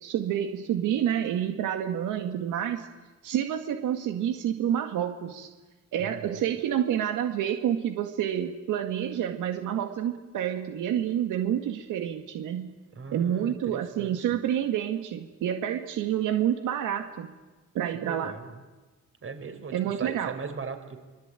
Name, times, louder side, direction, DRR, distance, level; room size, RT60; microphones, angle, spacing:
voice 1, 0.0-2.9 3.2-5.5 5.9-12.7 13.1-17.3 17.7-18.3 19.7-20.3, right 10 dB, 85° right, 6 dB, 2.0 m, -28 dB
voice 2, 6.0-6.4 12.9-14.4 17.9-18.6 19.2-21.0, right 5 dB, 45° right, 8 dB, 4.6 m, -39 dB
25.5 x 23.0 x 9.1 m, 1.3 s
cardioid pair, 90°, 30 cm